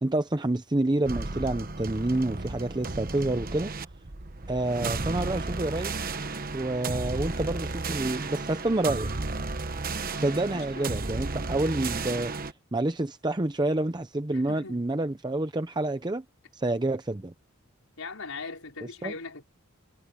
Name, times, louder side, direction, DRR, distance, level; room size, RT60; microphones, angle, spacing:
voice 1, 0.0-3.7 4.5-6.0 6.5-9.1 10.2-12.3 12.7-16.2 16.5-17.3 19.0-19.1, right 2 dB, 20° right, 0.7 m, -28 dB
sound 1, 1.1-12.5, right 3 dB, 40° right, 1.1 m, -33 dB
voice 2, 10.5-10.9 14.3-14.8 18.0-19.4, left 4 dB, 75° left, 5.1 m, -40 dB
head